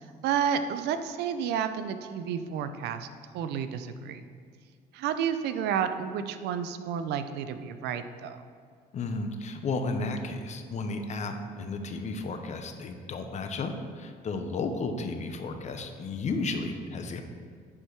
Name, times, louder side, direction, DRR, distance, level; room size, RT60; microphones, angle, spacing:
voice 1, 0.2-3.1 3.3-4.2 4.9-8.4, right 8 dB, 80° right, 10 dB, 0.6 m, -31 dB
voice 2, 8.9-17.2, left 3 dB, 45° left, 6 dB, 0.8 m, -33 dB
9.8 x 4.5 x 4.6 m, 2.2 s
cardioid pair, 110°, 17 cm